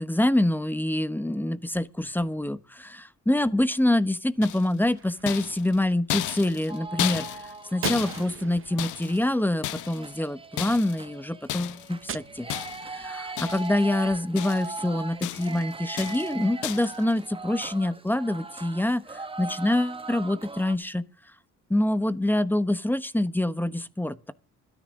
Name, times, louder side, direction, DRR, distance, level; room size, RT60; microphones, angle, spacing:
voice 1, 0.0-12.5 12.9-19.0 19.4-21.0 21.7-24.3, left 1 dB, 5° left, 1.0 m, -26 dB
sound 1, 4.4-4.9 5.3-9.3 9.6-10.2 10.6-11.1 11.5-11.9 12.5-13.0 13.4-13.9 14.1-14.8 15.2-15.6 16.0-16.3 16.6-17.0, left 15 dB, 85° left, 0.9 m, -34 dB
Gunshot gunfire, 4.8-5.9 7.8-10.2 12.1-13.1, right 9 dB, 45° right, 0.8 m, -40 dB
sound 2, 6.7-8.3 8.7-20.7, right 3 dB, 20° right, 1.4 m, -40 dB
26.5 x 10.0 x 3.7 m
cardioid pair, 90°, 30 cm